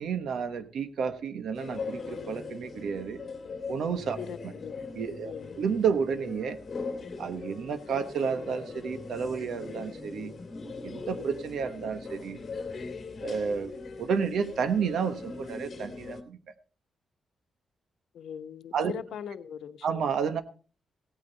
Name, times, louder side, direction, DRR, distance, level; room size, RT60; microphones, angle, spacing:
voice 1, 0.0-3.2 3.7-4.2 4.4-4.5 4.9-6.6 7.2-10.3 10.8-12.4 13.2-13.7 14.0-16.4 18.7-18.9 19.8-20.4, right 6 dB, 75° right, 1.2 m, -31 dB
sound 1, 1.5-16.2, left 4 dB, 40° left, 2.2 m, -40 dB
voice 2, 4.2-4.8 5.2-5.6 18.1-20.0, left 8 dB, 80° left, 1.0 m, -40 dB
17.0 x 9.1 x 4.0 m
cardioid pair, 120°, 0 cm